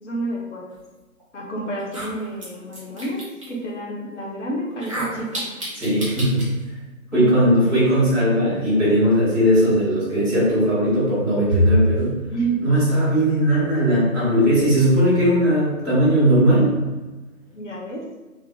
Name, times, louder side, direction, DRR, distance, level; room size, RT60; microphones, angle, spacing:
voice 1, 0.0-0.8 1.3-5.4 7.1-7.8 12.3-12.6 17.5-18.0, right 2 dB, 55° left, -3 dB, 1.0 m, -29 dB
sound 1, 1.2-1.3 1.8-3.5 4.7-6.5, right 1 dB, 25° right, 0.6 m, -32 dB
voice 2, 5.7-6.4 7.1-12.1 12.6-16.7, equal, ahead, -22 dB, 1.2 m, -18 dB
3.3 x 3.0 x 2.3 m, 1.2 s
figure-of-eight pair, 155°, 42 cm